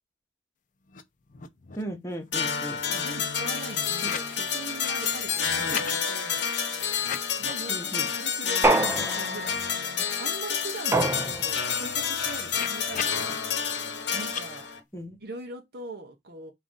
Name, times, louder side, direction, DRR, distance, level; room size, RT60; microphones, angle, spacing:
sound 1, 0.9-1.0 1.3-1.9 2.3-4.4 4.7-6.0 6.9-7.7 8.1-8.2 8.6-9.9 10.3-10.4 10.7-13.3 14.2-14.4, left 7 dB, 45° left, 0.5 m, -40 dB
voice 1, 1.8-2.8 4.0-4.1 5.6-5.9 7.7-8.1 14.9-15.2, right 1 dB, 15° left, 0.9 m, -36 dB
sound 2, 2.3-14.8, left 7 dB, 70° left, 0.8 m, -29 dB
voice 2, 2.9-6.4 7.4-13.4 14.1-14.7 15.2-16.5, right 2 dB, 60° right, 0.7 m, -41 dB
sound 3, 8.6-9.6 10.9-11.7, right 2 dB, 15° right, 0.4 m, -25 dB
3.7 x 2.4 x 3.6 m
head